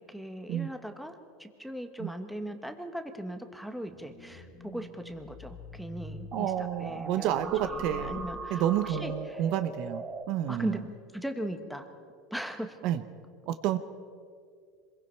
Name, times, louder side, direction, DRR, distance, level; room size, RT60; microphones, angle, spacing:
voice 1, 0.0-8.6 8.9-9.4 10.5-10.8 11.1-11.9 12.3-12.8, equal, ahead, 6 dB, 1.4 m, -39 dB
sound 1, 3.9-9.5 9.9-10.0, left 3 dB, 40° left, 2.7 m, -48 dB
sound 2, 6.3-10.2, right 3 dB, 25° right, 3.2 m, -39 dB
voice 2, 6.3-10.8 12.8-13.0 13.5-13.8, right 11 dB, 55° right, 10 dB, 1.0 m, -30 dB
26.0 x 22.0 x 4.6 m, 2.1 s
supercardioid pair, 145°, 0 cm